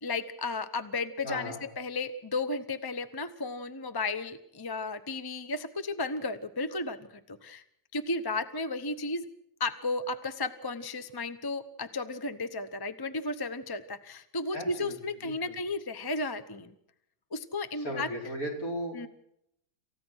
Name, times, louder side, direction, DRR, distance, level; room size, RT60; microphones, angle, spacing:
voice 1, 0.0-7.6 7.9-9.2 9.6-16.7 17.3-18.1 18.9-19.1, left 3 dB, 20° left, 11 dB, 0.6 m, -34 dB
voice 2, 1.2-1.6 14.5-15.0 15.2-15.6 17.7-19.0, equal, 55° left, 0 dB, 5.2 m, -36 dB
28.0 x 15.5 x 6.3 m, 0.74 s
omnidirectional pair, 1.8 m